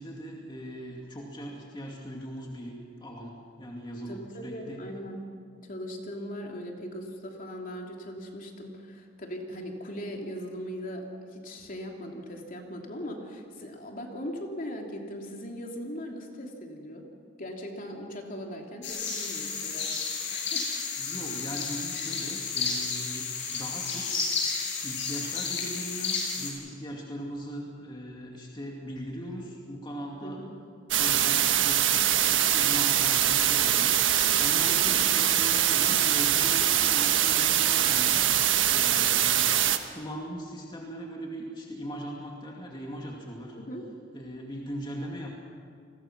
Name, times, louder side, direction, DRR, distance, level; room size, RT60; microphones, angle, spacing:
voice 1, 0.0-4.8 21.0-24.5 24.8-30.4 30.9-38.4 38.7-39.3 39.9-43.6 44.1-45.3, equal, 25° left, -1 dB, 2.3 m, -39 dB
voice 2, 4.1-5.2 5.6-17.1 17.4-20.0 20.2-20.7 30.2-30.5 34.7-35.1 43.5-43.8, equal, 45° left, 1 dB, 3.1 m, -39 dB
sound 1, 18.8-26.5, left 5 dB, 65° left, 7.4 m, -32 dB
sound 2, 30.9-39.8, right 11 dB, 85° right, 1.4 m, -23 dB
29.5 x 21.0 x 6.1 m, 2.3 s
head